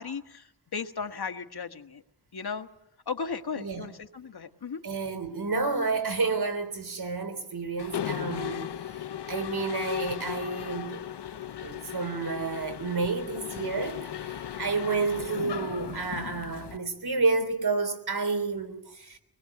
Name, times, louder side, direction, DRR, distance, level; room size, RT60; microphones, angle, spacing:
voice 1, 0.0-2.0 2.3-2.7 3.1-4.8, left 5 dB, 65° left, 1.5 m, -36 dB
voice 2, 4.8-8.7 9.3-11.1 11.6-19.2, right 4 dB, 65° right, 3.4 m, -30 dB
Mechanisms, 7.8-16.8, left 9 dB, 85° left, 0.8 m, -36 dB
24.5 x 20.5 x 7.8 m
wide cardioid pair, 80°, 40 cm